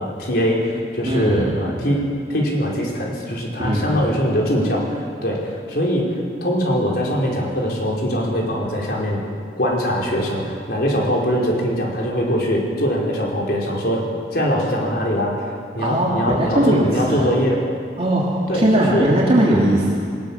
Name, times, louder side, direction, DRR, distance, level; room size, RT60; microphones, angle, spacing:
voice 1, 0.0-2.0 2.3-6.1 6.4-9.2 9.6-14.0 14.3-15.4 15.7-17.6 18.5-19.1, equal, 60° left, -2 dB, 4.9 m, -22 dB
voice 2, 1.0-1.5 3.6-3.9 15.8-17.3 18.0-19.9, right 1 dB, 35° right, -5 dB, 3.2 m, -19 dB
21.5 x 20.0 x 7.4 m, 2.2 s
head